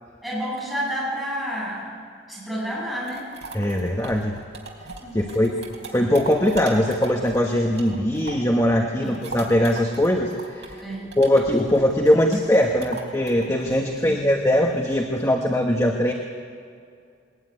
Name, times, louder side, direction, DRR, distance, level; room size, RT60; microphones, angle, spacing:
voice 1, 0.2-2.0 2.3-3.3 5.0-5.5 9.0-9.3 10.8-11.1 14.0-14.2, equal, ahead, -6 dB, 7.5 m, -30 dB
sound 1, 2.7-8.6 8.9-15.2, right 3 dB, 75° right, 3.9 m, -39 dB
voice 2, 3.5-4.3 5.1-5.5 5.9-10.7 11.2-16.1, left 1 dB, 15° left, 1 dB, 1.2 m, -21 dB
21.0 x 19.5 x 9.6 m, 2.3 s
head